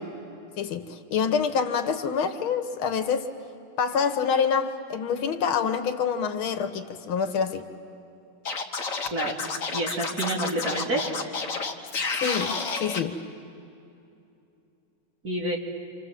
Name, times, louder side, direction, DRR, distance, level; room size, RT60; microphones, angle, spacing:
voice 1, 0.6-3.3 3.8-7.7 12.2-13.2, left 6 dB, 80° left, 8 dB, 2.0 m, -26 dB
Scratching (performance technique), 8.4-13.0, left 4 dB, 45° left, 1.4 m, -30 dB
voice 2, 9.7-11.1 15.2-15.6, right 1 dB, 45° right, -2 dB, 3.5 m, -28 dB
28.5 x 27.0 x 7.5 m, 2.7 s
omnidirectional pair, 2.3 m